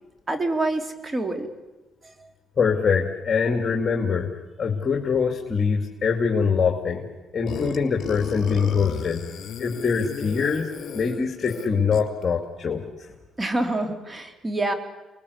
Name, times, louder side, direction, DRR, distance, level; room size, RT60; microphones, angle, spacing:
voice 1, 0.3-1.5 2.2-2.3 13.4-14.7, right 2 dB, 25° right, 6 dB, 3.4 m, -26 dB
voice 2, 2.6-4.3 4.6-7.0 7.3-9.2 9.6-13.1, left 5 dB, 40° left, 3 dB, 2.5 m, -24 dB
Burping eructation, 7.5-12.2, left 7 dB, 65° left, 3.3 m, -34 dB
28.0 x 20.5 x 8.3 m, 1.1 s
cardioid pair, 90°, 0 cm